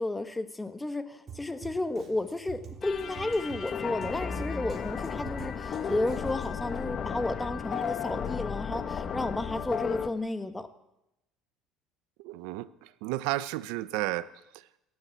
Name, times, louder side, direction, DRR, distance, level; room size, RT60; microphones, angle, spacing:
voice 1, 0.0-10.7, left 2 dB, 10° left, 9 dB, 1.4 m, -32 dB
Drum kit, 1.3-6.7, right 6 dB, 35° right, 3.4 m, -47 dB
sound 1, 2.8-10.1, left 7 dB, 35° left, 1.4 m, -34 dB
voice 2, 12.2-14.7, right 17 dB, 85° right, 15 dB, 0.8 m, -33 dB
28.0 x 12.0 x 8.4 m, 0.89 s
cardioid pair, 135°, 0 cm